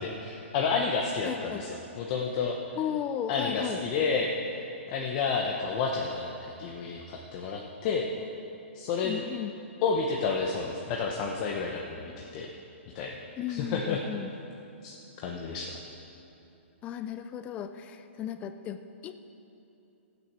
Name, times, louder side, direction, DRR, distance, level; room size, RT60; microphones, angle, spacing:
voice 1, 0.0-2.6 3.3-4.3 4.9-8.1 8.7-9.2 9.8-12.5 12.9-13.2 13.5-14.0 14.8-15.0 15.2-15.8, left 5 dB, 35° left, 0 dB, 1.0 m, -30 dB
voice 2, 1.3-1.7 2.8-3.8 9.0-9.5 13.4-14.3 16.8-18.8 19.0-19.1, left 9 dB, 20° left, 10 dB, 0.4 m, -35 dB
12.5 x 9.3 x 6.7 m, 2.9 s
hypercardioid pair, 155°, 7 cm